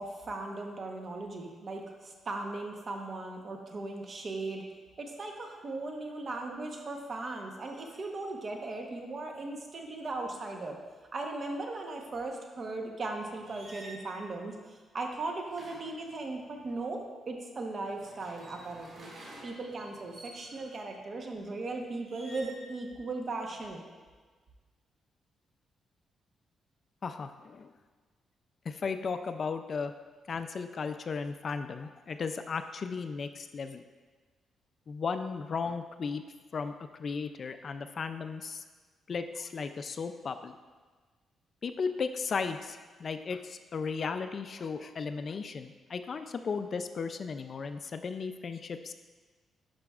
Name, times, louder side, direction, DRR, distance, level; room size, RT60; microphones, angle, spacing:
voice 1, 0.0-4.6 5.0-10.8 11.1-19.1 19.4-23.8, right 2 dB, 40° right, 2 dB, 1.0 m, -38 dB
sound 1, 13.4-14.0 15.4-16.7 17.8-20.8 22.0-22.7 23.1-23.7, right 1 dB, 55° right, 2.3 m, -51 dB
voice 2, 27.0-27.7 28.7-29.9 30.3-33.8 34.9-36.2 36.5-36.7 37.0-38.6 39.1-40.5 41.6-48.9, left 5 dB, 45° left, 9 dB, 0.3 m, -35 dB
11.0 x 5.7 x 2.4 m, 1.4 s
cardioid pair, 120°, 0 cm